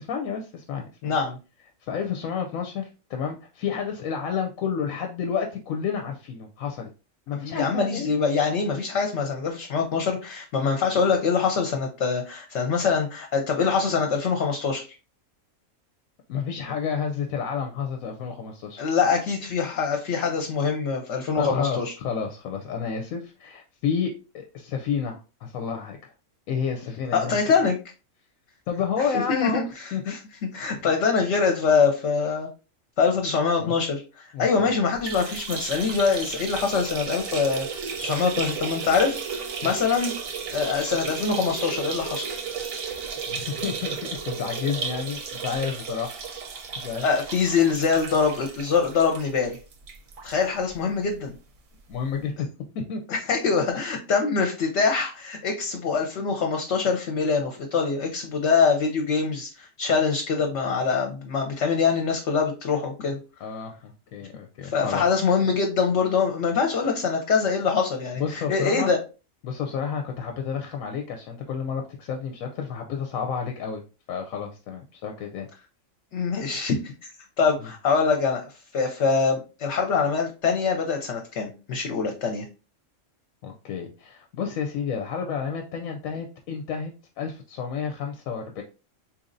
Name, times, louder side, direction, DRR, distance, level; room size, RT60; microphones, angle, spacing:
voice 1, 0.1-1.1 1.9-6.9 7.3-8.1 16.3-18.8 21.4-26.1 26.5-27.4 28.7-29.6 29.9-30.1 33.6-33.7 34.3-34.7 39.6-39.7 43.3-46.1 46.8-47.1 51.9-52.5 52.7-53.0 63.4-65.0 68.2-68.9 69.4-73.8 74.1-75.5 77.6-77.7 83.4-88.6, left 6 dB, 90° left, 4 dB, 1.0 m, -30 dB
voice 2, 1.0-1.4 7.4-14.8 18.8-21.9 27.1-27.8 29.1-30.2 30.5-32.5 33.0-37.7 38.0-40.1 40.5-42.3 47.0-49.6 50.2-51.3 53.1-63.2 64.6-69.0 76.1-76.9 77.4-82.5, left 5 dB, 65° left, 3 dB, 0.9 m, -24 dB
sound 1, 35.0-50.4 50.7-50.8 51.1-51.2 52.2-52.3, right 6 dB, 80° right, 1.1 m, -34 dB
4.1 x 3.0 x 2.5 m, 0.31 s
omnidirectional pair, 1.4 m